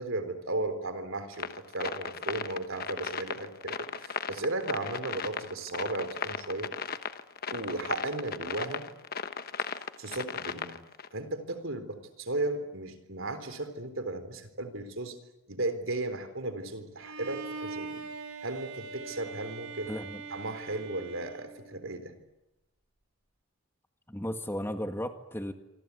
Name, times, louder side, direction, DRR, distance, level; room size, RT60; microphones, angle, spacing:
voice 1, 0.0-6.7 7.5-8.9 10.0-10.8 11.1-15.2 15.5-18.0 18.4-19.9 20.3-22.1, right 2 dB, 65° right, 10 dB, 3.7 m, -35 dB
sound 1, 1.3-11.1, left 6 dB, 45° left, 1.1 m, -36 dB
Bowed string instrument, 17.0-22.0, right 4 dB, 85° right, 3.3 m, -42 dB
voice 2, 19.9-20.2 24.1-25.5, equal, 10° left, 6 dB, 1.9 m, -35 dB
26.5 x 25.0 x 8.4 m, 0.95 s
head